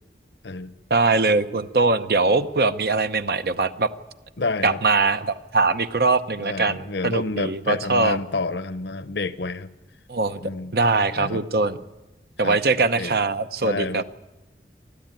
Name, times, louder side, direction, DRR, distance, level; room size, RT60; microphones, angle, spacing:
voice 1, 0.9-3.9 4.6-8.2 10.1-10.4 10.7-11.8 12.4-14.0, right 3 dB, 55° right, 0.8 m, -22 dB
voice 2, 4.4-4.8 6.4-9.7 10.4-10.7 11.2-11.4 12.4-12.6 12.9-13.2 13.6-14.0, left 3 dB, 75° left, 0.9 m, -29 dB
26.5 x 12.0 x 9.1 m
head